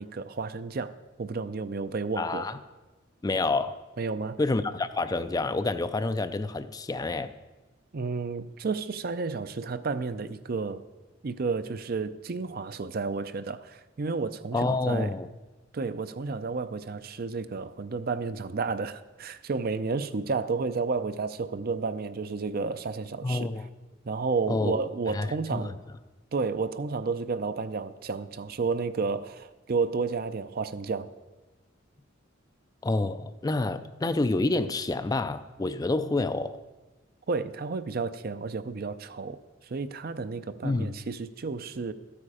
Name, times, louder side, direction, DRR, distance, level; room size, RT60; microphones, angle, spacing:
voice 1, 0.0-2.5 4.0-4.4 7.9-10.8 11.2-15.2 15.7-23.5 24.0-25.7 26.3-31.1 37.3-41.9, right 4 dB, 50° right, 12 dB, 0.5 m, -31 dB
voice 2, 2.2-2.6 3.2-3.8 4.4-7.3 14.5-15.3 23.2-23.7 24.5-24.9 25.1-25.6 32.8-36.6 40.6-40.9, left 2 dB, 20° left, 11 dB, 0.4 m, -28 dB
13.5 x 8.7 x 4.9 m, 1.2 s
head